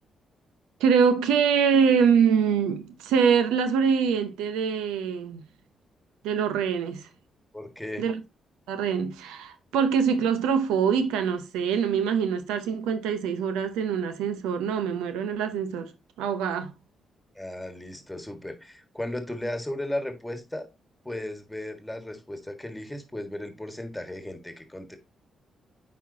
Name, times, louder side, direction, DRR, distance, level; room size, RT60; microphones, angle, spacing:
voice 1, 0.8-5.4 6.2-7.1 8.0-8.2 8.7-15.9 16.2-16.7, right 6 dB, 85° right, 0.6 m, -24 dB
voice 2, 7.5-8.0 17.3-20.7 21.0-25.0, left 1 dB, 10° left, 1.7 m, -35 dB
9.1 x 4.2 x 2.7 m
hypercardioid pair, 50°, 0 cm